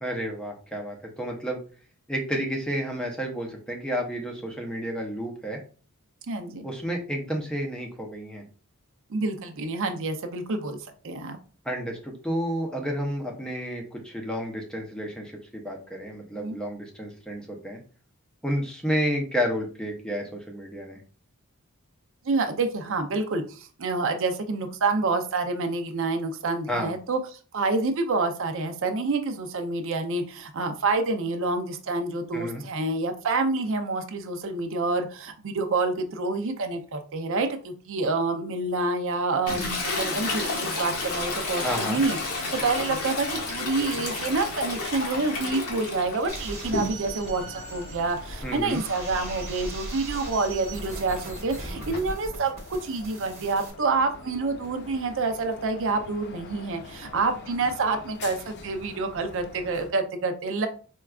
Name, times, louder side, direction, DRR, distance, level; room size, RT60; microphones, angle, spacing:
voice 1, 0.0-1.6 2.1-5.6 6.6-8.4 11.6-17.8 18.4-21.0 26.7-26.9 32.3-32.6 41.6-42.0 48.4-48.8, equal, 5° left, 0 dB, 0.6 m, -31 dB
voice 2, 6.3-6.6 9.1-11.4 16.3-16.6 22.2-52.5 52.8-60.7, right 3 dB, 60° right, 6 dB, 0.5 m, -28 dB
Toilet flush, 39.5-47.3 47.7-52.0, left 3 dB, 90° left, 1.1 m, -32 dB
sound 1, 42.1-59.9, left 4 dB, 50° left, 0.3 m, -46 dB
sound 2, 46.3-53.7, right 2 dB, 30° right, 1.0 m, -39 dB
4.5 x 2.3 x 2.3 m, 0.39 s
head